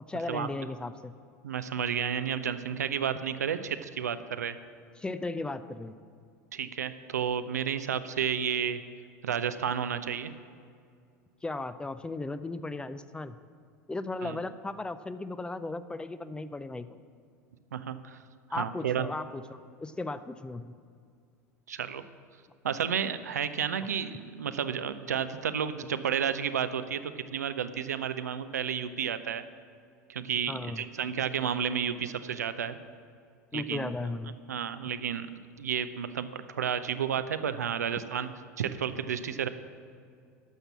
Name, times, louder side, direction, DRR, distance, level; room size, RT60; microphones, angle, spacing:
voice 1, 0.1-1.1 5.0-6.0 11.4-13.4 13.9-17.0 18.5-20.7 30.5-30.8 33.5-34.4, left 2 dB, 10° left, 13 dB, 0.4 m, -36 dB
voice 2, 1.4-4.5 6.5-8.8 9.2-10.3 14.2-14.4 17.7-18.2 18.5-19.1 21.7-22.0 22.6-29.4 30.1-32.8 33.5-33.9 34.5-35.3 35.6-38.3 38.6-39.5, right 8 dB, 75° right, 11 dB, 0.5 m, -31 dB
12.0 x 6.6 x 7.1 m, 2.3 s
figure-of-eight pair, 80°, 9 cm